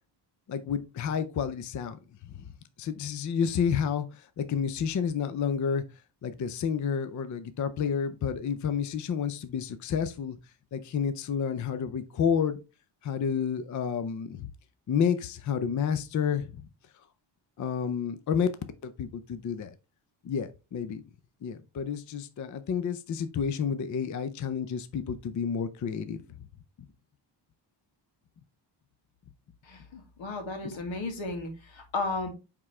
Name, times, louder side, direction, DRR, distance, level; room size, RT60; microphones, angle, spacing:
voice 1, 0.5-2.4 2.8-5.8 6.2-10.4 10.7-12.6 13.0-14.5 14.9-16.6 17.6-18.5 18.8-19.7 20.2-21.0 21.4-26.2 30.6-30.7, left 7 dB, 40° left, 0.5 m, -30 dB
voice 2, 29.6-32.3, left 3 dB, 85° left, 2.1 m, -34 dB
8.9 x 3.7 x 3.2 m
wide cardioid pair, 180°, 45 cm